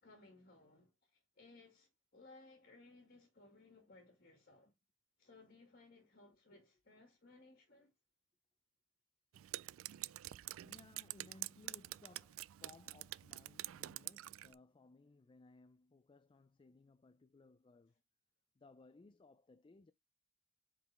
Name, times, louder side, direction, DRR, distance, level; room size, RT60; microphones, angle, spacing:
voice 1, 0.0-4.7 5.2-7.9, left 2 dB, 50° left, 2.1 m, -62 dB
Drip, 9.3-14.5, right 16 dB, 80° right, 0.3 m, -47 dB
voice 2, 10.5-18.0 18.6-19.9, left 3 dB, 25° left, 0.4 m, -63 dB
5.8 x 4.8 x 3.4 m
head